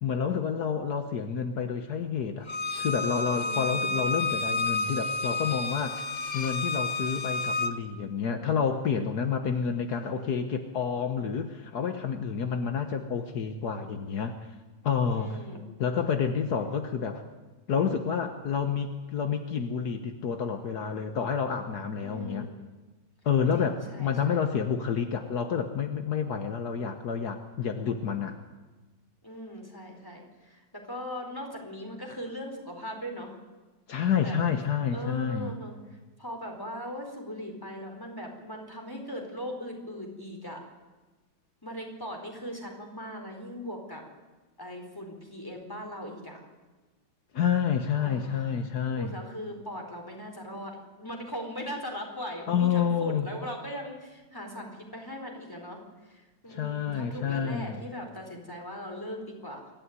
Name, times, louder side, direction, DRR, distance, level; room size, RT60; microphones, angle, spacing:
voice 1, 0.0-2.5 2.8-6.1 6.3-14.4 14.8-15.4 15.8-17.2 17.7-22.5 23.2-28.4 33.9-35.6 47.3-49.1 52.5-53.3 56.5-57.8, left 7 dB, 70° left, 7 dB, 1.7 m, -29 dB
Bowed string instrument, 2.5-7.7, left 2 dB, 30° left, 1.0 m, -30 dB
voice 2, 3.3-4.0 15.1-15.6 22.0-22.6 23.5-24.5 29.2-33.4 34.2-34.4 34.9-40.6 41.6-44.1 44.6-46.4 47.9-48.6 48.9-59.7, equal, 10° left, 2 dB, 4.5 m, -39 dB
25.5 x 13.0 x 9.6 m, 1.2 s
omnidirectional pair, 1.8 m